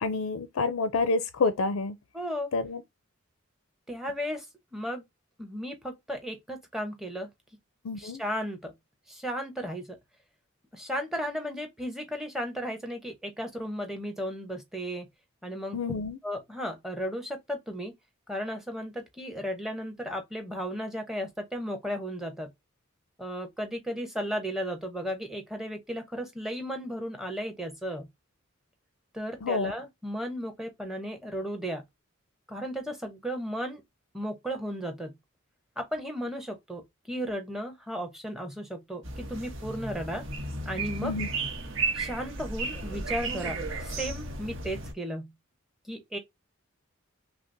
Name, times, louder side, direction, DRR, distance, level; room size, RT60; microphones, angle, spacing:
voice 1, 0.0-2.0 2.5-2.8 7.8-8.2 15.7-16.2 29.4-29.7 41.0-41.3, left 3 dB, 85° left, 0.5 m, -28 dB
voice 2, 2.1-2.5 3.9-4.5 4.7-5.0 5.4-7.3 8.0-8.7 9.1-10.0 10.7-15.1 15.4-15.8 16.2-17.9 18.3-22.5 23.2-28.1 29.1-31.8 32.5-33.8 34.1-35.1 35.8-36.8 37.1-40.2 40.6-41.1 41.9-45.3 45.8-46.2, equal, ahead, 0.8 m, -35 dB
sound 1, 39.0-44.9, right 3 dB, 60° right, 0.9 m, -34 dB
5.7 x 2.0 x 2.6 m
head